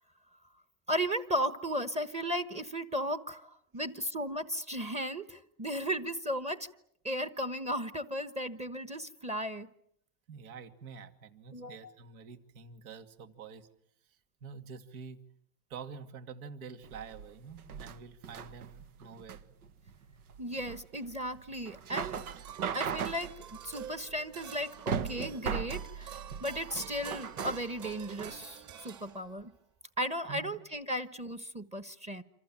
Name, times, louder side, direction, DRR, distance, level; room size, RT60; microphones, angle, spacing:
voice 1, 0.9-6.7 7.0-9.7 11.5-11.9 20.4-22.2 22.7-29.5 30.0-32.2, equal, 15° right, 12 dB, 1.2 m, -35 dB
voice 2, 10.3-13.7 14.4-15.2 15.7-19.4 30.3-30.6, right 6 dB, 75° right, 9 dB, 2.5 m, -47 dB
sound 1, 16.8-28.4, right 7 dB, 90° right, 1.4 m, -39 dB
sound 2, 21.9-29.5, right 9 dB, 40° right, 4.3 m, -48 dB
28.0 x 26.5 x 7.5 m, 0.72 s
supercardioid pair, 125°, 43 cm